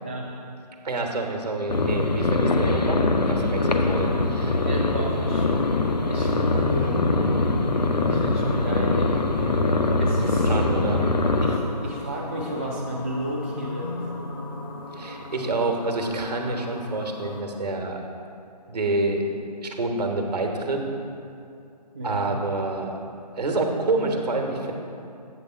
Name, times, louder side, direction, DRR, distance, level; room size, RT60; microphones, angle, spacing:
voice 1, 0.8-4.5 10.4-11.0 14.9-18.0 18.7-19.2 19.6-20.8 22.0-22.9 23.4-24.7, right 2 dB, 70° right, 2 dB, 1.1 m, -27 dB
sound 1, 1.7-11.6, left 2 dB, 75° left, 0.7 m, -23 dB
sound 2, 3.5-17.4, left 2 dB, 35° left, 0.7 m, -37 dB
voice 2, 4.6-5.8 6.1-7.0 8.0-9.3 10.0-10.5 11.4-14.0 21.9-22.4, equal, 20° right, -4 dB, 0.3 m, -32 dB
8.1 x 3.6 x 5.7 m, 2.5 s
figure-of-eight pair, 150°, 21 cm